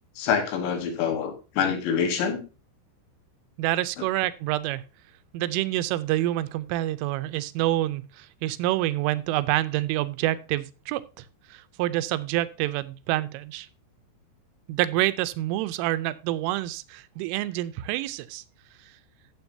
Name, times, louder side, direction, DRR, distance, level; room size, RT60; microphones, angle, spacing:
voice 1, 0.2-2.4, left 7 dB, 75° left, 3.4 m, -26 dB
voice 2, 3.6-4.8 5.3-11.2 11.5-13.7 14.7-18.4, right 15 dB, 90° right, 3.2 m, -27 dB
14.0 x 7.2 x 2.7 m
omnidirectional pair, 5.6 m